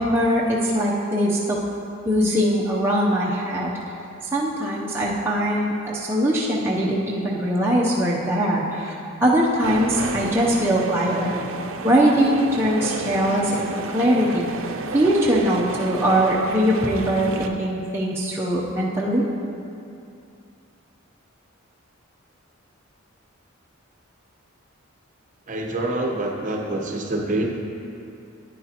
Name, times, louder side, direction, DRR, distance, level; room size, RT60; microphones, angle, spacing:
voice 1, 0.0-1.6 2.0-3.7 4.3-11.4 11.8-14.5 14.9-19.2, equal, 10° right, -6 dB, 0.6 m, -21 dB
sound 1, 9.6-17.5, right 3 dB, 70° right, 0.5 m, -32 dB
voice 2, 25.5-27.7, right 1 dB, 40° right, 1 dB, 0.9 m, -26 dB
11.0 x 9.5 x 2.9 m, 2.7 s
head